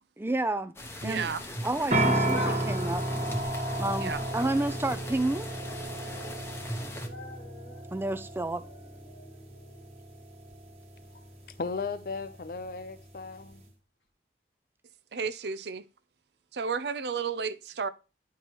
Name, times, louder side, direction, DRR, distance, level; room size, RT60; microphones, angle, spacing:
voice 1, 0.2-0.7 1.0-1.3 1.6-3.0 3.8-5.5 7.9-8.6, right 2 dB, 15° right, 0.4 m, -30 dB
sound 1, 0.8-7.1, equal, 15° left, 0.8 m, -40 dB
voice 2, 1.0-1.4 4.0-4.2 15.1-15.8 16.5-17.9, right 5 dB, 75° right, 0.5 m, -32 dB
sound 2, 1.9-13.7, right 1 dB, 35° right, 1.4 m, -34 dB
sound 3, 5.5-5.8 6.1-10.0 10.3-10.4 11.4-11.5, left 1 dB, 85° left, 2.1 m, -46 dB
voice 3, 11.6-13.6, left 4 dB, 55° left, 0.5 m, -36 dB
10.5 x 4.6 x 3.0 m
head